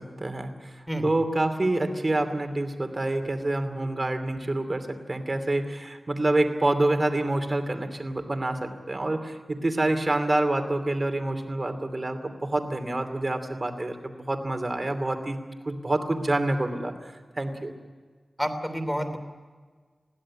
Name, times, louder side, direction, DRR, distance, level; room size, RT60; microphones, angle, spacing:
voice 1, 0.0-17.7, right 2 dB, 35° right, 7 dB, 2.7 m, -27 dB
voice 2, 18.4-19.2, equal, 5° left, 7 dB, 3.0 m, -29 dB
21.5 x 16.5 x 9.8 m, 1.5 s
wide cardioid pair, 80°, 0 cm